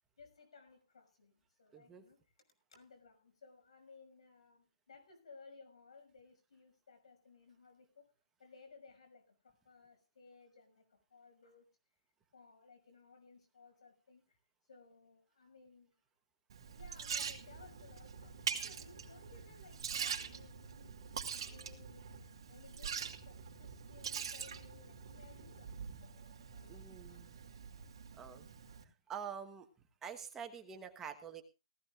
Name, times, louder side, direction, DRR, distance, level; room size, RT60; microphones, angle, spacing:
voice 1, 0.2-2.3 2.7-8.1 8.4-11.7 12.3-14.4 14.6-15.9 16.6-21.0 21.4-25.8 26.5-27.6 27.9-28.0 28.7-28.9, left 4 dB, 80° left, 6 dB, 6.0 m, -61 dB
voice 2, 1.7-2.0 26.7-27.4 28.2-28.5 28.8-29.7 30.0-31.4, right 7 dB, 10° right, 6 dB, 1.1 m, -47 dB
Liquid, 16.5-28.8, right 7 dB, 55° right, 2.5 m, -44 dB
sound 1, 18.0-26.8, left 3 dB, 50° left, 4.8 m, -66 dB
18.5 x 15.0 x 2.5 m, 0.30 s
hypercardioid pair, 160°, 3 cm